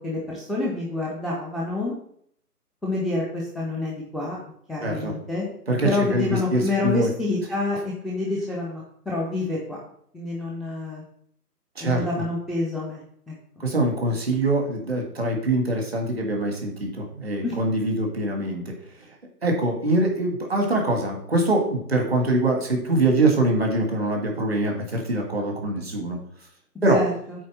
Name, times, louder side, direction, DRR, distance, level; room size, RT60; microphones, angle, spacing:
voice 1, 0.0-1.9 2.8-4.4 4.7-5.5 5.8-7.8 8.0-9.8 10.1-11.0 11.8-13.3 17.4-17.6 26.9-27.1, left 2 dB, ahead, -5 dB, 0.6 m, -27 dB
voice 2, 4.8-5.2 5.7-7.1 11.8-12.2 13.6-18.6 19.0-19.1 19.4-26.2 26.8-27.0, right 1 dB, 40° right, 1 dB, 1.7 m, -23 dB
8.4 x 3.8 x 6.0 m, 0.65 s
hypercardioid pair, 180°, 49 cm